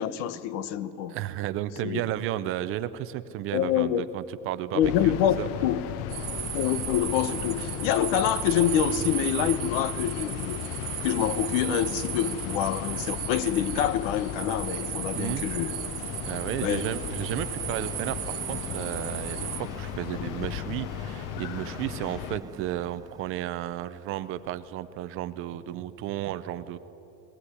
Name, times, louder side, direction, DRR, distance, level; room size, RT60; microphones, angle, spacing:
voice 1, 0.0-1.1 1.8-2.0 3.5-4.1 4.7-5.8 6.5-10.6 11.0-15.8 16.6-16.9, left 10 dB, 75° left, 15 dB, 1.1 m, -26 dB
voice 2, 1.1-5.5 15.1-15.5 16.3-26.8, right 13 dB, 35° right, 13 dB, 0.6 m, -33 dB
sound 1, 4.8-22.4, left 13 dB, 40° left, 0.5 m, -36 dB
sound 2, 6.1-19.6, right 18 dB, 70° right, 1.5 m, -36 dB
Subway metro underground, 13.8-24.7, right 4 dB, 10° right, 0.9 m, -47 dB
21.0 x 17.0 x 9.8 m, 3.0 s
cardioid pair, 170°, 36 cm